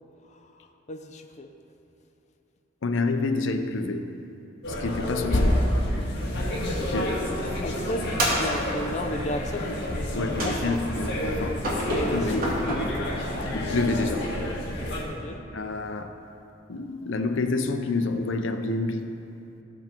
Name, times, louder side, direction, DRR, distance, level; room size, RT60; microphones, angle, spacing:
voice 1, 0.9-1.5 7.6-10.0 10.4-10.8 11.9-12.9 15.0-15.4, left 1 dB, 40° left, 4 dB, 0.6 m, -33 dB
voice 2, 2.8-4.1 4.7-5.7 6.8-7.3 10.1-11.6 11.9-12.5 13.5-14.3 15.5-16.1 16.7-19.1, left 3 dB, 80° left, 7 dB, 0.6 m, -28 dB
sound 1, 4.6-15.0, left 1 dB, 60° left, 1.9 m, -29 dB
sound 2, 8.2-9.0 10.4-11.0 11.6-12.8, equal, 50° right, 2.6 m, -28 dB
15.5 x 6.3 x 4.5 m, 2.9 s
head